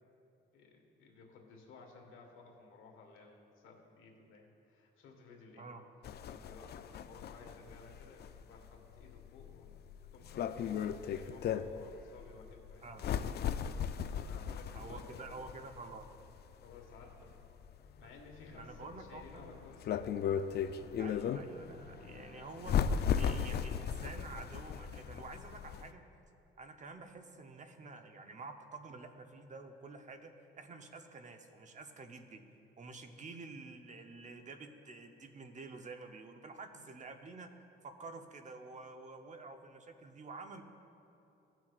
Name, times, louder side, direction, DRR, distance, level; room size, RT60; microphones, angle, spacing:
voice 1, 0.5-5.7 6.2-9.8 10.1-15.2 16.6-17.4 17.9-20.1 36.7-36.9, left 4 dB, 85° left, 1 dB, 1.5 m, -56 dB
sound 1, 6.0-25.9, left 8 dB, 55° left, 0.4 m, -37 dB
voice 2, 14.7-16.1 18.0-18.1 18.5-19.6 21.0-22.8 23.1-26.0 26.6-30.3 30.6-32.4 32.8-37.5 37.8-40.6, right 3 dB, 40° right, 6 dB, 0.8 m, -49 dB
17.5 x 6.0 x 2.4 m, 2.9 s
cardioid pair, 90°, 20 cm